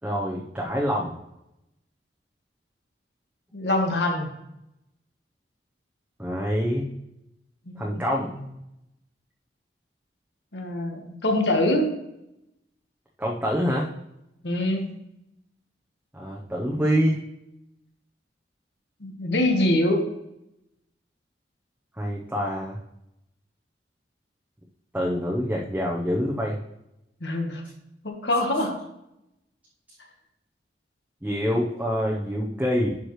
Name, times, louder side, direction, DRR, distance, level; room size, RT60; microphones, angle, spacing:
voice 1, 0.0-1.2 6.2-6.9 7.8-8.3 13.2-13.9 16.1-17.2 22.0-22.8 24.9-26.6 31.2-33.0, equal, 10° right, -3 dB, 0.8 m, -26 dB
voice 2, 3.5-4.3 7.7-8.0 10.5-11.9 14.4-14.9 19.0-20.1 27.2-27.6 28.0-28.8, left 1 dB, 75° left, 2 dB, 1.4 m, -24 dB
11.5 x 4.8 x 3.1 m, 0.86 s
head